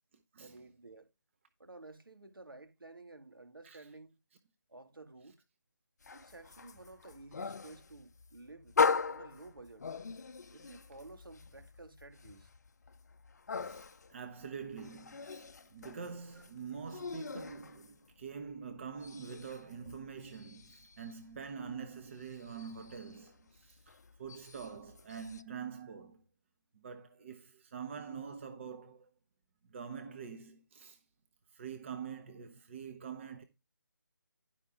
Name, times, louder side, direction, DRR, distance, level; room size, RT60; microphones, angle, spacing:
voice 1, 0.4-1.1 1.6-4.2 4.7-5.4 6.1-8.7 9.1-9.9 10.5-12.5, right 2 dB, 85° right, 2.3 m, -53 dB
sound 1, 6.0-18.5 18.8-25.4, left 5 dB, 50° left, 0.7 m, -39 dB
voice 2, 14.1-23.9 24.2-26.2 26.7-29.1 29.7-31.0 31.5-33.4, right 6 dB, 35° right, 1.0 m, -45 dB
11.0 x 5.7 x 3.7 m
figure-of-eight pair, 155°, 11 cm